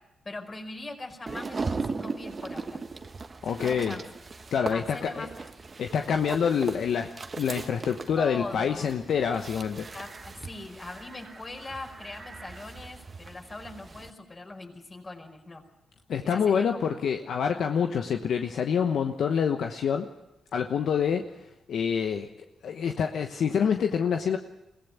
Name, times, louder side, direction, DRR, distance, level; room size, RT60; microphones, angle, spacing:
voice 1, 0.2-2.8 3.5-4.0 4.7-5.3 8.2-8.9 9.9-15.7 16.3-16.7, left 2 dB, 35° left, 4 dB, 5.1 m, -41 dB
sound 1, 1.3-14.1, right 4 dB, 40° right, 1.3 m, -39 dB
voice 2, 3.4-4.0 4.5-5.3 5.8-7.1 7.4-9.9 16.1-20.1 20.5-21.3 21.7-22.3 22.6-24.4, left 7 dB, 70° left, 5 dB, 1.1 m, -26 dB
22.5 x 16.5 x 8.3 m, 0.94 s
supercardioid pair, 50°, 0 cm